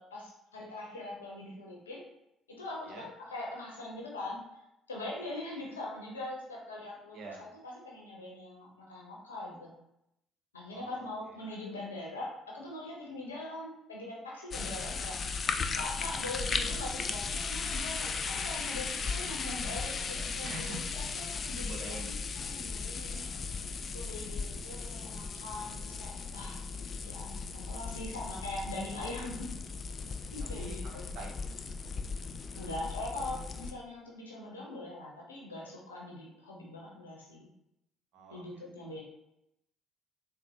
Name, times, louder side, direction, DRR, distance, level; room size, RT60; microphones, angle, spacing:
voice 1, 0.0-2.0 2.5-4.6 4.9-9.7 10.5-15.4 15.8-23.2 23.9-26.6 27.0-29.5 30.3-31.1 32.5-37.5 38.3-39.0, left 2 dB, 90° left, -3 dB, 0.6 m, -42 dB
voice 2, 7.1-7.4 10.7-11.1 20.4-20.8 21.6-22.2 23.1-23.8 30.6-30.7 31.1-31.5 38.1-38.6, right 2 dB, 65° right, 0 dB, 0.8 m, -45 dB
sound 1, 14.5-33.7, left 4 dB, 45° left, 0.3 m, -37 dB
4.2 x 2.1 x 2.7 m, 0.84 s
hypercardioid pair, 50°, 0 cm